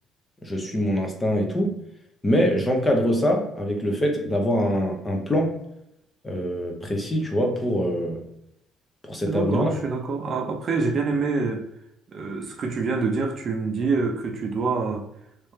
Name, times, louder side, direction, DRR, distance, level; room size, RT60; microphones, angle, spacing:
voice 1, 0.4-1.8 2.2-5.6 6.2-8.2 9.0-9.7, equal, 15° left, 0.7 m, -24 dB
voice 2, 9.3-11.7 12.1-15.1, right 4 dB, 40° right, 0.6 m, -26 dB
3.3 x 3.2 x 3.1 m
cardioid pair, 140°, 0 cm